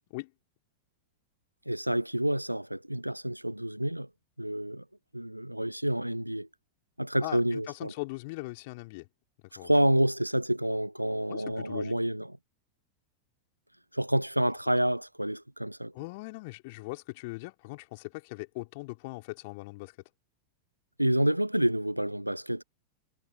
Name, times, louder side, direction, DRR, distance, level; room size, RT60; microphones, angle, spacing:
voice 1, 1.7-4.1 4.4-4.8 5.1-6.5 7.0-7.9 9.6-12.4 13.9-15.9 21.0-22.6, right 1 dB, 90° right, 0.7 m, -28 dB
voice 2, 7.2-9.1 9.6-9.7 11.3-11.9 15.9-19.9, left 25 dB, 50° left, 3.8 m, -40 dB
figure-of-eight pair, 90°, 0 cm